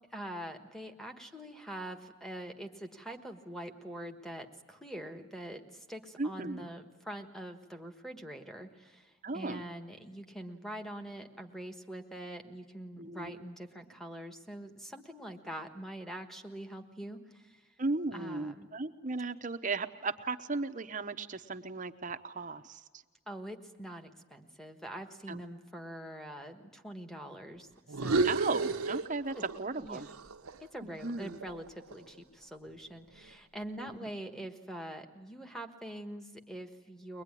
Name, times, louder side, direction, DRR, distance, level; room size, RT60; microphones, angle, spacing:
voice 1, 0.1-17.7 18.1-18.7 23.3-27.7 28.0-28.3 29.3-29.4 29.8-30.1 30.7-37.2, right 1 dB, ahead, 3 dB, 1.4 m, -44 dB
voice 2, 6.2-6.7 9.2-9.6 13.0-13.4 17.8-22.8 25.3-25.4 28.2-30.1 30.8-31.4 33.8-34.1, right 3 dB, 35° right, 8 dB, 0.8 m, -36 dB
sound 1, 27.9-29.6 29.9-32.2, right 3 dB, 80° right, 0.9 m, -33 dB
23.0 x 21.5 x 9.8 m, 1.3 s
head